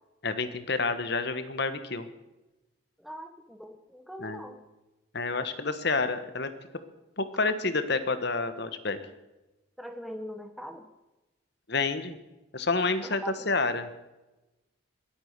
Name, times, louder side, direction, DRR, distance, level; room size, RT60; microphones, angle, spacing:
voice 1, 0.2-2.1 4.2-4.4 5.1-6.5 7.2-9.0 11.7-12.2 12.5-13.9, left 3 dB, 50° left, 11 dB, 1.4 m, -29 dB
voice 2, 3.0-4.6 9.8-10.9 13.0-13.4, equal, ahead, 6 dB, 1.0 m, -41 dB
22.0 x 8.8 x 6.7 m, 1.0 s
head